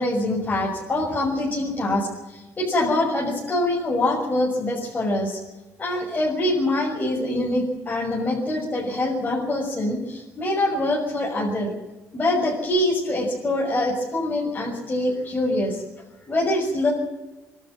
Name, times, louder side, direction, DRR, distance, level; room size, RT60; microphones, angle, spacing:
voice 1, 0.0-5.4 5.8-11.7 12.1-15.8 16.3-16.9, left 1 dB, 25° left, -4 dB, 6.4 m, -24 dB
24.0 x 12.5 x 9.8 m, 1.1 s
cardioid pair, 115°, 6 cm